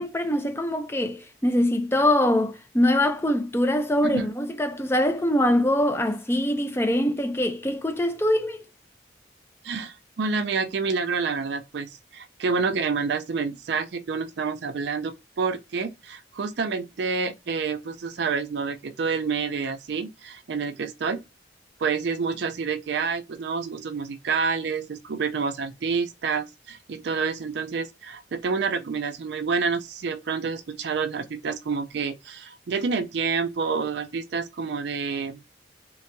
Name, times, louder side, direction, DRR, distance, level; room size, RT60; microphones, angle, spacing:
voice 1, 0.0-8.6, left 1 dB, 15° left, 0.5 m, -23 dB
voice 2, 9.6-21.2 21.8-35.4, right 5 dB, 65° right, 0.4 m, -28 dB
3.6 x 2.9 x 2.2 m
head